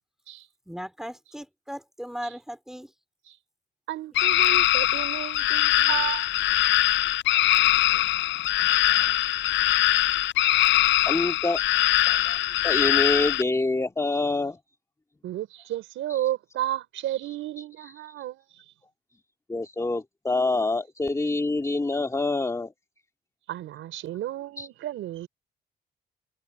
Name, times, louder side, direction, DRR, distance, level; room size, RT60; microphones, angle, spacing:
voice 1, 0.7-2.9 4.2-4.4, equal, ahead, 4.3 m, -38 dB
voice 2, 3.9-6.3 15.2-18.6 23.5-25.3, right 13 dB, 85° right, 4.4 m, -32 dB
sound 1, 4.1-13.4, left 15 dB, 70° left, 0.4 m, -22 dB
voice 3, 7.4-9.1 11.1-11.6 12.1-12.4 12.6-14.6 16.1-16.3 17.8-17.9 19.5-22.7 24.6-24.7, left 2 dB, 15° left, 2.2 m, -27 dB
cardioid pair, 90°, 20 cm